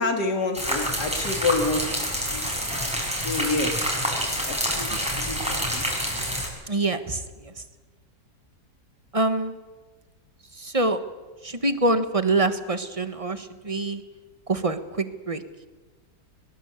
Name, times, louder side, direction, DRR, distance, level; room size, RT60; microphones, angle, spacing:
voice 1, 0.0-2.4 3.2-3.8 4.5-4.9 5.2-5.8, left 3 dB, 80° left, 5 dB, 2.7 m, -28 dB
sound 1, 0.5-6.5, equal, 5° right, 6.2 m, -27 dB
voice 2, 6.7-7.5 9.1-9.5 10.5-11.0 11.4-14.0 14.5-15.4, right 2 dB, 20° right, 10 dB, 1.4 m, -25 dB
22.5 x 21.0 x 8.3 m, 1.3 s
omnidirectional pair, 1.7 m